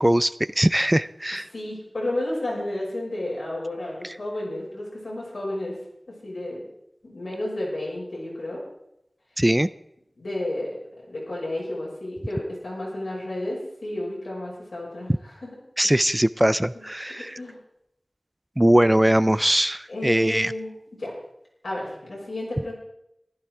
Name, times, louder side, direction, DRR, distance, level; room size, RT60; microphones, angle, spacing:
voice 1, 0.0-1.5 9.4-9.7 15.8-17.4 18.6-20.5, right 1 dB, 15° right, 16 dB, 0.4 m, -21 dB
voice 2, 1.5-5.7 6.1-6.6 7.0-8.6 10.2-10.8 11.1-15.5 15.8-16.0 17.2-17.6 19.9-21.2 21.6-22.7, left 1 dB, 90° left, -5 dB, 6.0 m, -32 dB
15.0 x 11.5 x 4.7 m, 0.82 s
wide cardioid pair, 45°, 0 cm